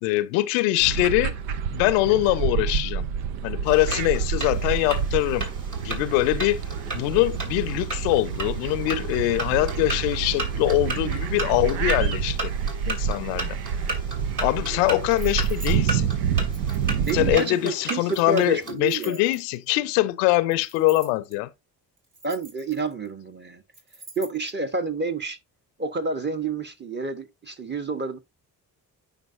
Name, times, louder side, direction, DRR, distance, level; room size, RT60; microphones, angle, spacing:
voice 1, 0.0-1.4 1.7-3.1 3.4-5.5 5.8-6.6 6.9-12.5 12.9-13.6 14.4-16.1 17.1-21.5, left 17 dB, 80° left, 0.6 m, -23 dB
sound 1, 0.8-17.4, right 7 dB, 80° right, 0.7 m, -28 dB
sound 2, 3.7-18.7, right 2 dB, 40° right, 2.8 m, -36 dB
sound 3, 15.1-15.8 16.5-17.4 18.1-19.7 20.5-21.3 22.0-23.1 23.7-24.5, right 2 dB, 55° right, 2.9 m, -46 dB
voice 2, 17.1-19.2 22.2-23.6 24.2-25.4 25.8-28.2, right 3 dB, 20° right, 1.2 m, -29 dB
8.9 x 5.3 x 2.6 m
hypercardioid pair, 40°, 49 cm